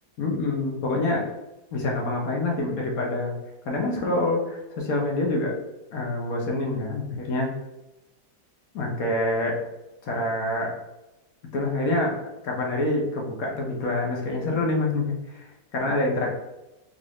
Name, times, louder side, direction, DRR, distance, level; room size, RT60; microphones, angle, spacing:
voice 1, 0.2-1.3 1.7-3.3 3.6-5.5 5.9-7.5 8.7-9.6 10.0-10.7 11.5-16.3, left 2 dB, 60° left, -1 dB, 1.1 m, -26 dB
3.8 x 2.5 x 3.0 m, 0.96 s
omnidirectional pair, 1.9 m